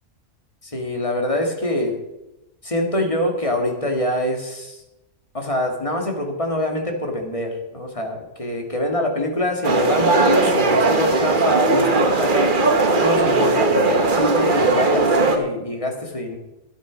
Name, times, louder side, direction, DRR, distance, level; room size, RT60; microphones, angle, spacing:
voice 1, 0.6-2.0 2.6-4.8 5.3-12.5 12.9-16.4, left 1 dB, 25° left, 2 dB, 2.0 m, -24 dB
sound 1, 9.6-15.4, right 3 dB, 40° right, 1.3 m, -18 dB
12.0 x 11.5 x 5.1 m, 0.97 s
omnidirectional pair, 1.3 m